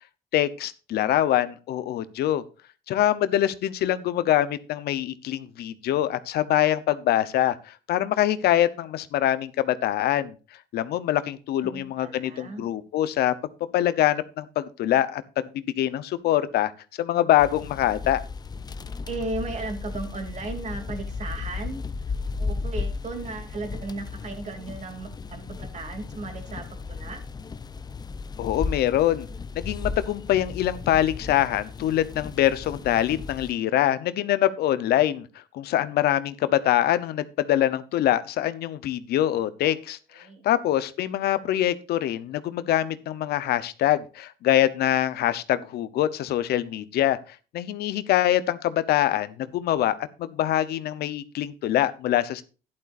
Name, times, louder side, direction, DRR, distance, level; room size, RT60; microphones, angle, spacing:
voice 1, 0.3-2.4 2.9-10.3 10.7-13.3 13.7-16.7 17.0-18.2 28.4-29.3 29.5-35.3 35.5-52.4, left 12 dB, 70° left, 14 dB, 0.9 m, -24 dB
voice 2, 11.6-12.7 19.1-22.0 22.4-27.2 40.1-40.4, right 3 dB, 45° right, 5 dB, 2.8 m, -36 dB
sound 1, 17.4-33.5, left 4 dB, 25° left, 0.7 m, -35 dB
12.0 x 11.0 x 2.6 m, 0.34 s
cardioid pair, 110°, 17 cm